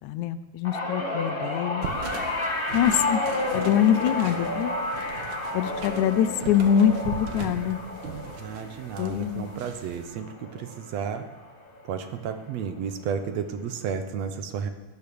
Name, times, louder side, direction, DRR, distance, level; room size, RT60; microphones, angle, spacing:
voice 1, 0.0-1.9 2.7-3.2 3.5-4.8 5.5-7.8 9.0-9.5, left 9 dB, 85° left, 14 dB, 2.1 m, -24 dB
sound 1, 0.6-11.1 11.4-11.8 13.0-13.1, left 2 dB, 35° left, 0.9 m, -31 dB
sound 2, 1.8-10.0, right 6 dB, 55° right, 1.5 m, -39 dB
voice 2, 8.4-11.3 11.8-14.7, right 7 dB, 70° right, 8 dB, 2.0 m, -32 dB
17.0 x 9.7 x 6.9 m, 1.3 s
omnidirectional pair, 3.4 m